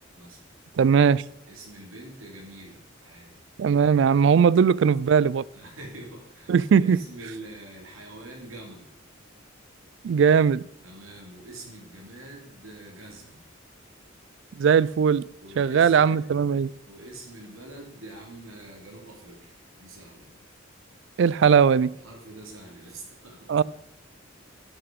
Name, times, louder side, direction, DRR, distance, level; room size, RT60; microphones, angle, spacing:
voice 1, 0.2-0.5 1.5-3.4 5.5-8.9 10.8-13.4 15.4-16.5 16.9-20.3 21.9-23.6, right 1 dB, 90° right, 2.9 m, -45 dB
voice 2, 0.8-1.2 3.6-5.4 6.5-7.0 10.0-10.6 14.6-15.2 15.6-16.7 21.2-21.9 23.5-23.6, right 6 dB, 60° right, 0.3 m, -19 dB
12.0 x 6.8 x 5.2 m
head